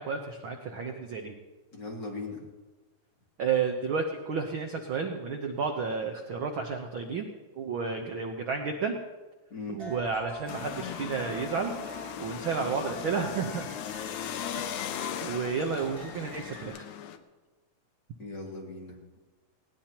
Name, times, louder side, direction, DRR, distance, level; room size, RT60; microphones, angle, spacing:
voice 1, 0.0-1.3 3.4-7.3 7.5-8.9 9.7-11.7 12.2-13.7 14.5-14.9 15.2-16.8, right 5 dB, 75° right, 3 dB, 1.1 m, -31 dB
voice 2, 1.7-2.4 9.5-9.8 18.2-18.9, left 3 dB, 35° left, -3 dB, 3.0 m, -39 dB
sound 1, 9.8-16.7, left 1 dB, 15° right, 4.2 m, -45 dB
sound 2, 10.5-17.2, left 9 dB, 75° left, 2.1 m, -38 dB
20.0 x 17.5 x 2.9 m, 1.2 s
omnidirectional pair, 3.7 m